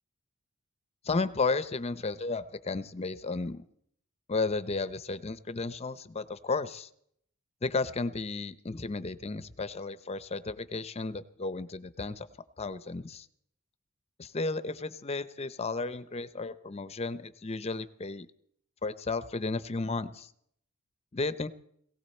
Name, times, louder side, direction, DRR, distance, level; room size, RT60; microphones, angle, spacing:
voice 1, 1.0-3.7 4.3-6.9 7.6-12.3 12.6-13.3 14.2-18.3 18.8-20.3 21.1-21.5, left 3 dB, 30° left, 14 dB, 0.6 m, -33 dB
18.5 x 17.5 x 4.3 m, 0.68 s
head